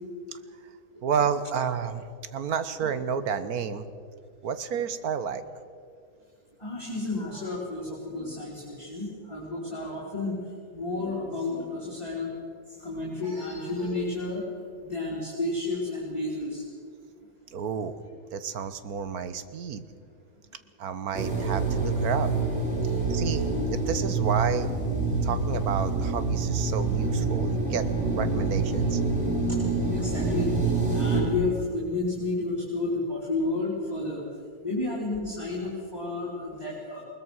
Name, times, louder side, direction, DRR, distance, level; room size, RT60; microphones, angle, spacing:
voice 1, 1.0-2.0 2.3-3.9 4.4-5.4 17.5-18.0 18.3-19.9 20.8-22.3 23.1-23.4 23.7-24.7 25.2-29.0, right 7 dB, 80° right, 12 dB, 1.5 m, -30 dB
voice 2, 6.6-10.4 10.7-12.3 12.8-14.5 14.8-16.6 22.8-23.0 29.5-30.5 30.9-34.2 34.6-37.0, left 2 dB, 20° left, -7 dB, 3.7 m, -31 dB
sound 1, 21.1-31.2, right 3 dB, 50° right, 6.4 m, -26 dB
21.0 x 20.0 x 6.3 m, 2.2 s
omnidirectional pair, 1.6 m